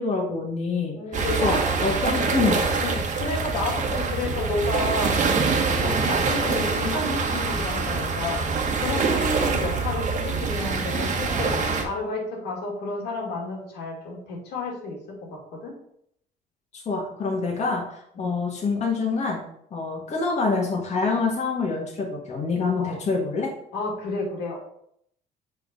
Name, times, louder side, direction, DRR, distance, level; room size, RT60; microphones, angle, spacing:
voice 1, 0.0-1.0 1.4-2.7 16.7-19.4 19.7-23.5, left 4 dB, 40° left, -3 dB, 1.7 m, -26 dB
voice 2, 0.9-1.6 1.9-2.2 2.8-5.4 5.7-8.5 8.8-15.8 18.1-18.4 22.8-23.0 23.7-24.6, left 3 dB, 80° left, -2 dB, 2.6 m, -31 dB
sound 1, 1.1-11.8, right 4 dB, 45° right, 1.3 m, -25 dB
5.7 x 4.5 x 5.3 m, 0.70 s
cardioid pair, 110°, 17 cm